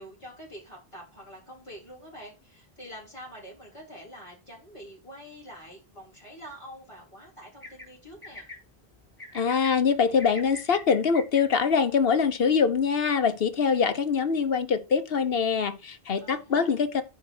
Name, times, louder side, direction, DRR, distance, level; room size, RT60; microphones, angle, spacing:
voice 1, 0.0-8.4 16.2-16.8, equal, 30° left, 4.1 m, -46 dB
sound 1, 7.6-7.9 8.2-8.6 9.2-9.7 10.2-11.4, left 2 dB, 10° left, 4.2 m, -41 dB
voice 2, 9.3-17.0, left 6 dB, 70° left, 1.2 m, -24 dB
9.9 x 4.7 x 6.1 m
omnidirectional pair, 1.0 m